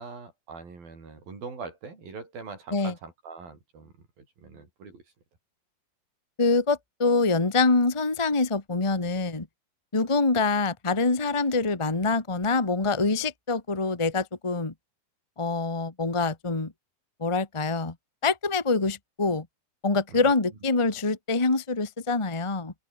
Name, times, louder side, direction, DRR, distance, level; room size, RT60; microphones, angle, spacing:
voice 1, 0.0-5.0 20.1-20.3, right 4 dB, 80° right, 8.7 m, -42 dB
voice 2, 6.4-9.5 9.9-14.7 15.4-16.7 17.2-17.9 18.2-19.5 19.8-22.7, left 3 dB, 30° left, 0.5 m, -25 dB
open air
omnidirectional pair, 4.1 m